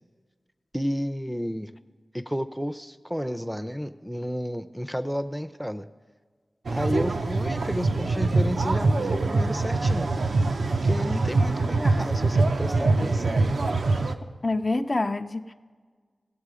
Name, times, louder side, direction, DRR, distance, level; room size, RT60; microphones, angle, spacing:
voice 1, 0.7-1.7 2.1-5.9 6.7-10.2 10.8-13.5, equal, 5° right, 10 dB, 0.5 m, -31 dB
sound 1, 6.7-14.2, right 3 dB, 80° right, 0.5 m, -24 dB
voice 2, 14.4-15.5, left 2 dB, 45° left, 7 dB, 0.5 m, -26 dB
16.5 x 7.3 x 4.9 m, 1.5 s
cardioid pair, 45°, 0 cm